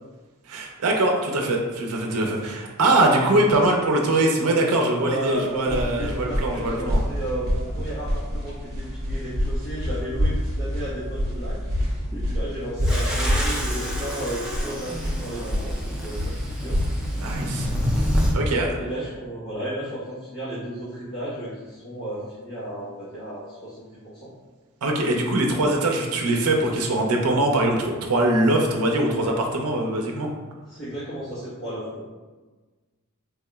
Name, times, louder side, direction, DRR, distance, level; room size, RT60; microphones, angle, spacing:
voice 1, 0.5-7.0 17.2-17.7 18.3-18.7 24.8-30.3, right 1 dB, 80° right, 1 dB, 0.5 m, -22 dB
voice 2, 5.0-11.6 11.8-16.3 16.6-16.8 18.7-24.3 30.7-32.0, right 1 dB, 50° left, -12 dB, 0.9 m, -34 dB
sound 1, 5.4-18.6, equal, 45° right, 0.7 m, -27 dB
sound 2, 12.8-18.3, equal, 5° right, 0.4 m, -28 dB
3.5 x 2.9 x 2.2 m, 1.3 s
head